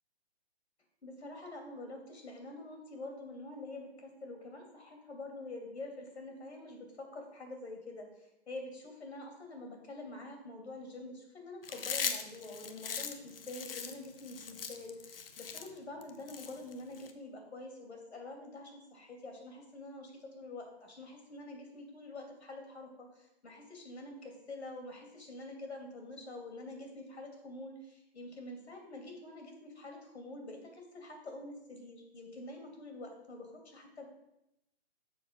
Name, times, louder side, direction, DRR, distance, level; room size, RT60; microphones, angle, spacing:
voice 1, 1.0-34.0, left 2 dB, 80° left, 2 dB, 2.7 m, -46 dB
Chewing mastication, 11.6-17.1, left 6 dB, 60° left, 0.8 m, -40 dB
7.2 x 5.2 x 5.2 m, 0.85 s
hypercardioid pair, 160°, 33 cm